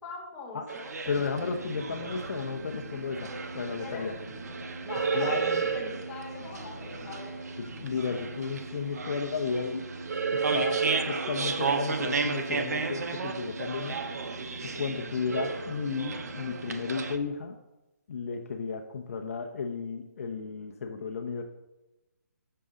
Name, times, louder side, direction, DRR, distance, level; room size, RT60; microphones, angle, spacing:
voice 1, 0.0-0.9 3.8-4.1 4.8-7.4, left 3 dB, 5° left, -7 dB, 1.8 m, -42 dB
sound 1, 0.7-17.2, right 5 dB, 65° right, 0.7 m, -33 dB
sound 2, 1.0-17.2, right 2 dB, 15° right, 2.3 m, -43 dB
voice 2, 1.1-4.1 5.1-5.7 7.6-9.9 10.3-14.0 14.6-17.6 18.1-21.4, left 5 dB, 55° left, 4 dB, 0.7 m, -33 dB
6.9 x 6.7 x 3.7 m, 1.0 s
hypercardioid pair, 160°, 9 cm